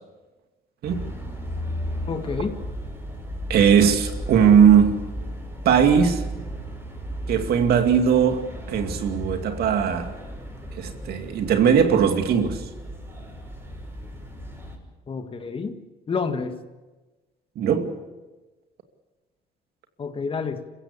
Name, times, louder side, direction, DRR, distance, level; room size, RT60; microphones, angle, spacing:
sound 1, 0.8-14.8, equal, 15° right, 6.3 m, -35 dB
voice 1, 2.1-2.6 15.1-15.8 16.1-16.6 20.0-20.6, left 5 dB, 30° left, 1.8 m, -28 dB
voice 2, 3.5-5.0 5.6-6.2 7.3-10.1 10.8-12.6 17.6-17.9, right 7 dB, 70° right, 2.5 m, -19 dB
27.0 x 15.5 x 8.4 m
cardioid pair, 110°, 17 cm